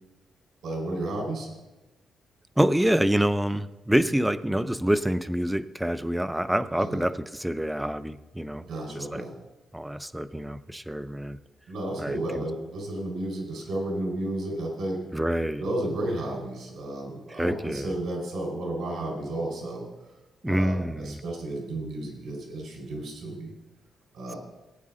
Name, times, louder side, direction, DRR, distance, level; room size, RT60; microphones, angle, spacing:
voice 1, 0.6-1.5 6.8-7.0 8.6-9.3 11.7-15.0 15.6-19.9 20.5-23.5 24.1-24.4, right 1 dB, 75° right, 0 dB, 4.5 m, -32 dB
voice 2, 2.6-8.7 9.0-9.2 9.7-11.4 12.0-12.4 15.1-15.6 17.3-17.9 20.4-21.2, right 1 dB, 5° right, 13 dB, 0.4 m, -26 dB
16.5 x 9.3 x 3.8 m, 1.1 s
cardioid pair, 135°, 0 cm